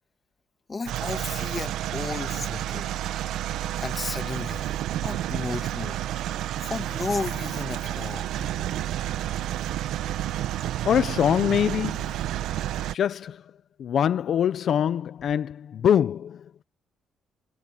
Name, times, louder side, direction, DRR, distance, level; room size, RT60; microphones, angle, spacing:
voice 1, 0.7-2.9 3.8-4.7 5.0-6.0 6.6-8.5 10.6-10.7, left 4 dB, 30° left, 2.5 m, -33 dB
sound 1, 0.9-12.9, right 12 dB, 85° right, 1.1 m, -30 dB
voice 2, 10.8-12.1 12.9-13.4 13.8-16.6, left 9 dB, 65° left, 0.8 m, -24 dB
cardioid pair, 90°, 0 cm